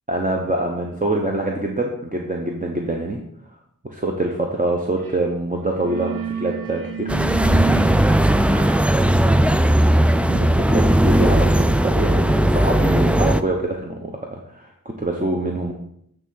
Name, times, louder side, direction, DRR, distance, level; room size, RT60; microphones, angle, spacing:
voice 1, 0.1-3.2 3.8-7.1 10.3-15.7, right 2 dB, 25° right, 0 dB, 1.0 m, -25 dB
sound 1, 5.0-5.3 5.5-12.2, right 8 dB, 85° right, 1.0 m, -33 dB
sound 2, 7.1-13.4, right 1 dB, 5° right, 0.3 m, -17 dB
9.2 x 3.4 x 5.7 m, 0.71 s
wide cardioid pair, 50°, 33 cm